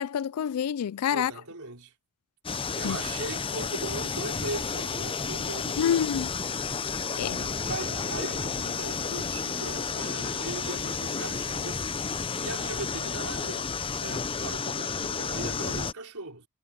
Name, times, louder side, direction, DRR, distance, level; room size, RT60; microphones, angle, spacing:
voice 1, 0.0-1.3 2.8-3.0 5.8-6.3 7.2-7.4, left 8 dB, 85° left, 0.4 m, -27 dB
voice 2, 1.1-1.9 2.8-6.1 7.4-11.8 12.4-13.7 14.0-16.5, right 2 dB, 80° right, 4.3 m, -39 dB
sound 1, 2.4-15.9, left 5 dB, 25° left, 0.6 m, -31 dB
head